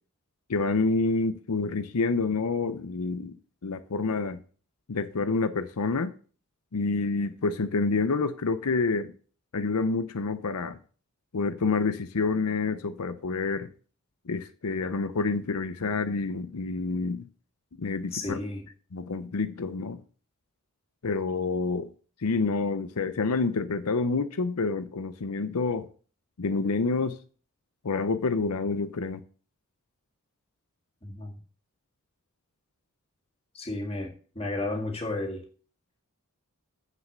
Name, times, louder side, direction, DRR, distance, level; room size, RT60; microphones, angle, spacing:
voice 1, 0.5-3.4 3.6-4.4 4.9-6.1 6.7-9.1 9.5-10.8 11.3-13.7 14.3-17.3 17.8-18.4 18.9-20.0 21.0-21.9 22.2-25.9 26.4-27.2 27.8-29.2, left 4 dB, 90° left, 0.7 m, -28 dB
voice 2, 18.1-18.7 31.0-31.4 33.5-35.4, left 2 dB, 25° left, 2.0 m, -33 dB
7.4 x 6.5 x 6.6 m
head